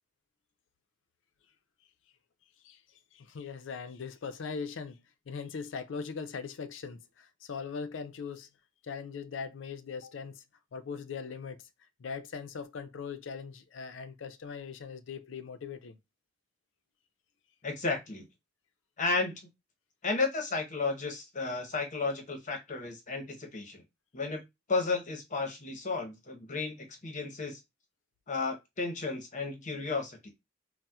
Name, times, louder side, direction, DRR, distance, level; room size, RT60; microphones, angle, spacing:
voice 1, 3.1-8.5 8.8-10.4 10.7-11.7 12.0-16.0, left 5 dB, 85° left, 0.4 m, -40 dB
voice 2, 17.6-18.2 19.0-19.3 20.0-23.8 24.1-24.4 24.7-27.6 28.3-30.3, left 3 dB, 40° left, 0.8 m, -33 dB
4.1 x 2.0 x 2.3 m
head